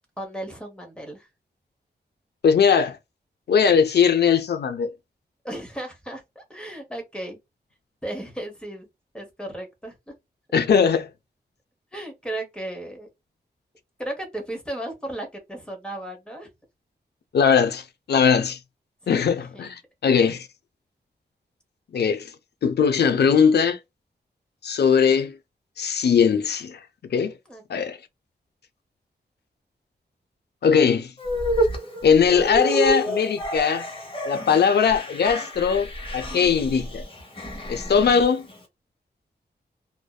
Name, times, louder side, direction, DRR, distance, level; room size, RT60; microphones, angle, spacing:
voice 1, 0.2-1.3 5.4-7.4 8.0-8.9 9.1-10.1 11.9-13.1 14.0-16.5 19.1-19.7 20.1-20.4 27.5-27.9, right 1 dB, 5° left, 0.9 m, -35 dB
voice 2, 2.4-3.0 3.5-4.9 10.5-11.1 17.3-18.6 19.1-20.5 21.9-22.3 22.6-23.8 24.6-25.4 25.8-26.8 27.1-27.3 27.7-28.0 30.6-31.1 32.0-33.9 34.3-37.0 37.7-38.5, left 6 dB, 70° left, 0.5 m, -20 dB
sound 1, 31.2-38.6, right 1 dB, 30° left, 1.0 m, -29 dB
2.5 x 2.1 x 2.2 m
wide cardioid pair, 105°, 18 cm